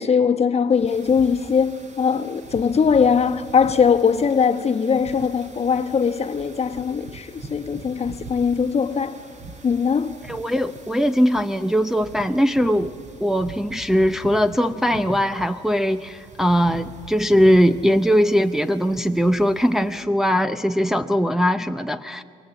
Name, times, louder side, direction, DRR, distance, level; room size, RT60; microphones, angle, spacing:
voice 1, 0.0-9.2 9.6-10.2, left 6 dB, 35° left, 1.3 m, -20 dB
sound 1, 0.7-20.0, right 3 dB, 40° right, 3.5 m, -43 dB
voice 2, 10.3-12.9 13.2-22.2, equal, ahead, 0.6 m, -20 dB
28.0 x 23.0 x 8.0 m
cardioid pair, 95°, 18 cm